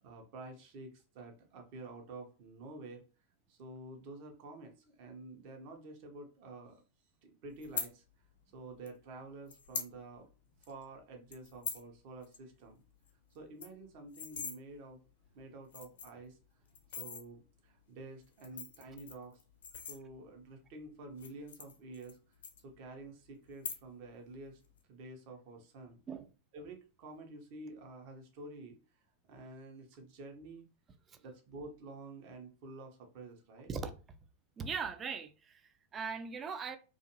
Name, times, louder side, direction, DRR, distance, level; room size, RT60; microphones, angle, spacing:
voice 1, 0.0-3.0 3.5-6.8 7.2-8.0 8.5-10.3 10.6-12.8 13.3-15.0 15.3-16.4 17.0-19.4 19.9-22.2 22.6-24.6 24.9-26.0 26.5-28.8 29.3-30.7 31.2-33.7, right 2 dB, 45° right, 0.8 m, -49 dB
sound 1, 7.6-7.9 8.9-9.0 9.5-9.9 10.3-10.4 10.6-10.8 11.3-11.9 12.2-12.4 12.7-12.8 13.1-13.2 13.4-14.6 15.2-15.3 15.6-16.2 16.7-17.2 18.2-20.4 21.1-22.2 22.4-23.1 23.5-24.1 24.4-24.8, left 6 dB, 60° left, 0.6 m, -42 dB
voice 2, 33.7-34.0 34.6-36.8, right 5 dB, 25° right, 0.4 m, -40 dB
2.5 x 2.4 x 2.9 m
figure-of-eight pair, 90°, 0 cm